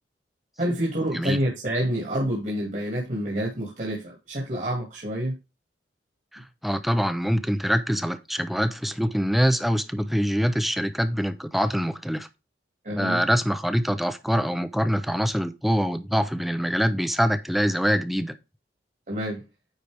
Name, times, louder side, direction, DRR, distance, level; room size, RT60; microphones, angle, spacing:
voice 1, 0.6-5.3 12.8-13.2 19.1-19.4, right 1 dB, 45° right, 2.2 m, -28 dB
voice 2, 6.3-12.3 13.0-18.4, equal, ahead, 0.6 m, -24 dB
9.6 x 4.6 x 3.4 m
head